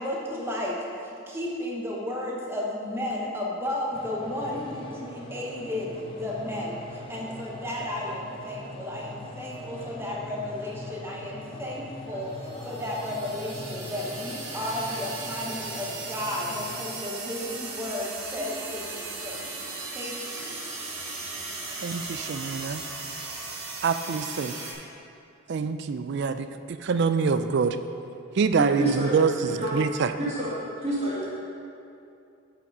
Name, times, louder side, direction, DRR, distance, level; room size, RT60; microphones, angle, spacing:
voice 1, 0.0-19.5 19.9-20.6, left 1 dB, 10° right, -3 dB, 1.0 m, -33 dB
sound 1, 3.9-16.8, left 1 dB, 25° left, 0.7 m, -41 dB
sound 2, 12.3-24.7, right 3 dB, 85° right, 1.5 m, -37 dB
voice 2, 21.8-22.8 23.8-24.6 25.5-27.8 28.3-30.1, right 5 dB, 50° right, 11 dB, 0.3 m, -25 dB
voice 3, 28.6-29.1 29.5-29.7 30.1-30.5 30.8-31.2, right 1 dB, 30° right, -9 dB, 2.2 m, -28 dB
7.6 x 5.8 x 5.4 m, 2.6 s
head